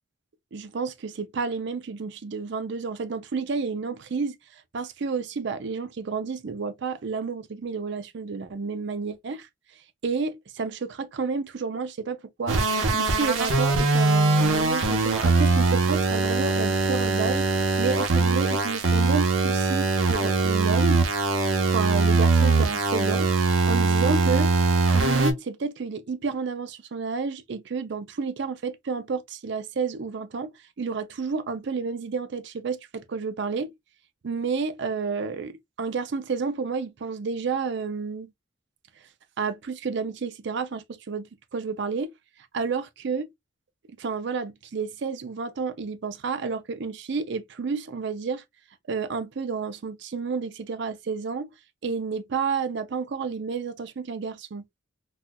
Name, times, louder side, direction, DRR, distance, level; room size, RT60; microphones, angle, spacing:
voice 1, 0.5-9.5 10.0-12.6 12.9-17.5 17.8-21.0 21.7-23.3 23.6-24.5 24.9-33.7 34.2-38.3 39.4-41.2 41.5-42.1 42.5-43.3 44.0-48.4 48.9-51.5 51.8-54.6, right 5 dB, 60° right, 0.5 m, -30 dB
sound 1, 12.5-25.3, right 3 dB, 80° right, 0.9 m, -22 dB
4.2 x 2.3 x 2.2 m
head